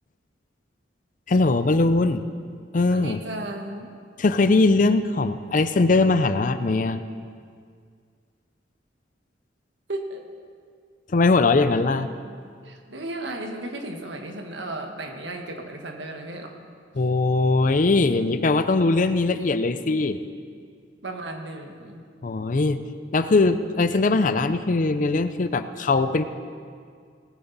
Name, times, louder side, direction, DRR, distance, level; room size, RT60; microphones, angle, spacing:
voice 1, 1.3-2.2 2.7-3.2 4.2-7.0 11.1-12.1 16.9-20.2 22.2-22.8 23.1-26.2, left 3 dB, 45° left, 11 dB, 0.5 m, -21 dB
voice 2, 2.9-3.9 9.9-10.2 12.2-16.5 21.0-22.0, right 1 dB, 75° right, 3 dB, 1.5 m, -35 dB
19.0 x 9.8 x 4.1 m, 2.1 s
head